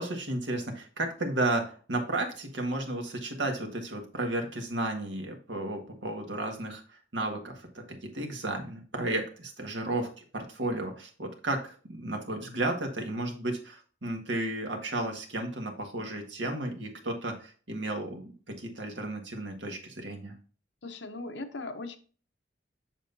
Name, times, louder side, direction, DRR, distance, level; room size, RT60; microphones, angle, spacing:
voice 1, 0.0-6.8 7.1-20.3, right 2 dB, 75° right, 4 dB, 1.7 m, -33 dB
voice 2, 20.8-22.0, left 2 dB, 70° left, 8 dB, 0.8 m, -38 dB
7.6 x 6.1 x 2.7 m, 0.40 s
head